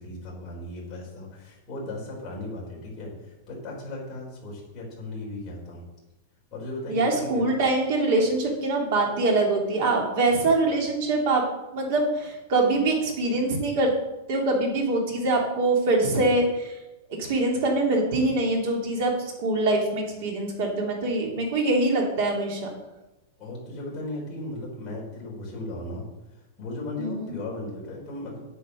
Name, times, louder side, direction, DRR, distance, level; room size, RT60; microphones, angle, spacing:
voice 1, 0.0-5.8 6.5-7.5 23.4-26.0 26.6-28.4, left 1 dB, 15° left, -6 dB, 4.1 m, -36 dB
voice 2, 6.9-11.4 11.7-13.9 14.3-16.7 17.2-19.1 19.4-22.6 27.0-27.3, right 2 dB, 40° right, 0 dB, 2.8 m, -24 dB
8.7 x 8.3 x 6.3 m, 1.0 s
supercardioid pair, 180°, 0 cm